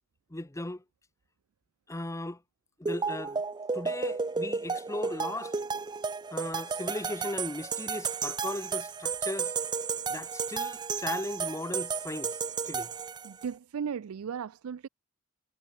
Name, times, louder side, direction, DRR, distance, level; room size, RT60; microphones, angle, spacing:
voice 1, 0.3-0.8 1.9-2.4 2.8-3.4 3.7-5.5 6.3-9.5 10.1-12.9, left 1 dB, 15° left, 0.8 m, -37 dB
sound 1, 2.9-13.5, right 5 dB, 20° right, 0.4 m, -33 dB
voice 2, 13.2-14.9, right 7 dB, 80° right, 0.4 m, -36 dB
head